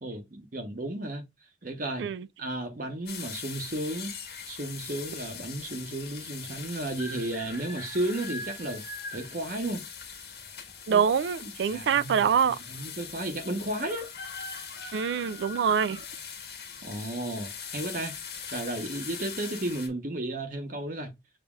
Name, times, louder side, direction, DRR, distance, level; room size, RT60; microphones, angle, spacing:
voice 1, 0.0-1.2 1.6-2.1 2.4-4.1 4.5-8.8 9.1-9.8 10.9-11.0 11.4-14.1 16.8-18.2 18.5-21.1, right 1 dB, 50° right, 0.9 m, -33 dB
sound 1, 3.1-19.9, left 5 dB, 60° left, 1.4 m, -41 dB
voice 2, 10.9-12.6 14.9-16.0, right 7 dB, 75° right, 0.3 m, -25 dB
7.1 x 2.7 x 2.3 m
head